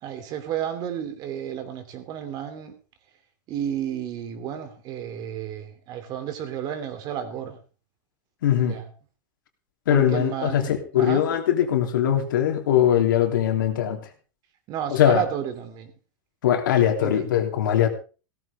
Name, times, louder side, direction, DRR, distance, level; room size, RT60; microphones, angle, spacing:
voice 1, 0.0-2.7 3.5-7.6 8.6-8.9 9.9-11.2 14.7-15.9 17.0-17.2, right 9 dB, 40° right, 3.0 m, -32 dB
voice 2, 8.4-8.8 9.9-14.0 14.9-15.2 16.4-17.9, left 10 dB, 90° left, 3.2 m, -21 dB
16.5 x 14.0 x 3.6 m
supercardioid pair, 145°, 10 cm